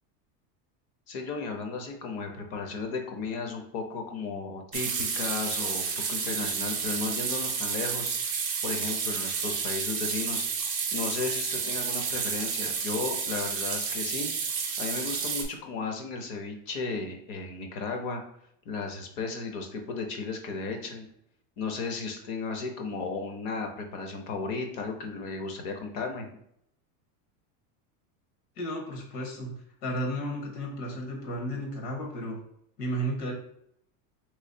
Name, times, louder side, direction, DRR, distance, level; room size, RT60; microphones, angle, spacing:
voice 1, 1.1-8.1 8.6-10.5 10.9-14.3 14.8-18.2 18.7-21.1 21.6-26.3, left 4 dB, 40° left, 4 dB, 0.7 m, -34 dB
sound 1, 4.7-15.4, right 6 dB, 30° right, 0.5 m, -31 dB
voice 2, 28.6-29.5 29.8-32.4 32.8-33.3, right 1 dB, 70° left, 1 dB, 1.4 m, -33 dB
3.3 x 3.2 x 2.6 m, 0.72 s
supercardioid pair, 155°, 49 cm